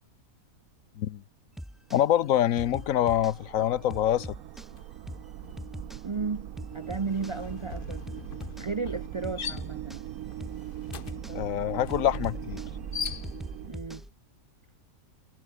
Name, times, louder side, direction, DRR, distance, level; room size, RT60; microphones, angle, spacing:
sound 1, 1.6-2.0 2.6-3.4 3.9-4.7 5.1-5.3 5.6-6.0 6.6-7.4 7.9-8.7 9.2-10.0 10.4-10.6 10.9-11.4 11.9-14.1, equal, ahead, 2.5 m, -41 dB
sound 2, 1.8-13.7, right 12 dB, 75° right, 1.1 m, -41 dB
voice 1, 1.9-4.4 11.3-12.6, left 11 dB, 70° left, 1.1 m, -25 dB
sound 3, 4.7-5.0 5.3-13.7, left 7 dB, 45° left, 1.0 m, -42 dB
voice 2, 6.0-8.0 8.6-10.1 13.6-14.0, right 4 dB, 50° right, 0.3 m, -34 dB
omnidirectional pair, 1.5 m